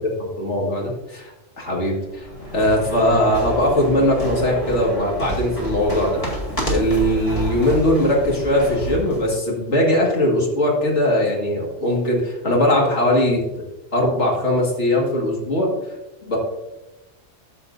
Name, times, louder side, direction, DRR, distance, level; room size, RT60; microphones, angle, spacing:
voice 1, 0.4-2.3 2.5-6.2 6.7-13.4 13.9-15.7 16.2-16.4, left 1 dB, 65° left, -2 dB, 2.4 m, -20 dB
sound 1, 2.1-9.3, equal, 25° left, 2.2 m, -29 dB
13.5 x 5.8 x 2.7 m, 1.0 s
omnidirectional pair, 1.3 m